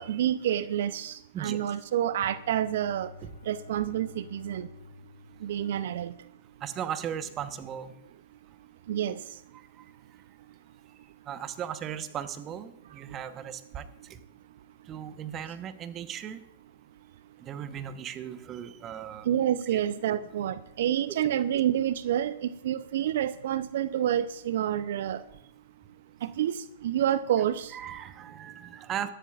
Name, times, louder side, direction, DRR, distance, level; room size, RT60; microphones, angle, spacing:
voice 1, 0.0-3.1 3.5-4.7 5.4-6.1 8.9-9.2 19.3-25.2 26.2-27.7, right 11 dB, 60° right, 15 dB, 0.6 m, -28 dB
Bowed string instrument, 2.0-6.5, left 4 dB, 70° left, 2.0 m, -51 dB
voice 2, 6.6-7.9 11.3-13.8 14.1-14.2 14.9-16.4 17.4-19.3 19.7-19.8 27.7-29.1, right 9 dB, 30° right, 11 dB, 1.1 m, -37 dB
24.0 x 11.5 x 2.5 m, 0.81 s
figure-of-eight pair, 105°, 0 cm